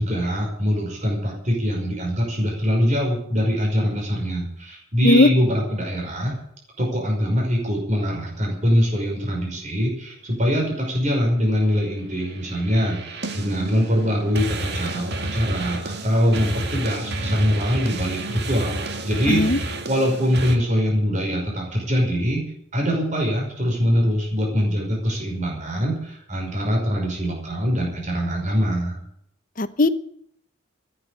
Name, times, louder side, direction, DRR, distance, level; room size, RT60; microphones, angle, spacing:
voice 1, 0.0-6.4 6.8-22.4 22.7-29.0, equal, 35° right, 0 dB, 5.4 m, -23 dB
sound 1, 12.2-20.6, right 2 dB, 55° right, 2.0 m, -30 dB
voice 2, 19.3-19.6 29.6-29.9, left 1 dB, 40° left, 12 dB, 0.9 m, -17 dB
15.0 x 9.8 x 8.4 m, 0.69 s
head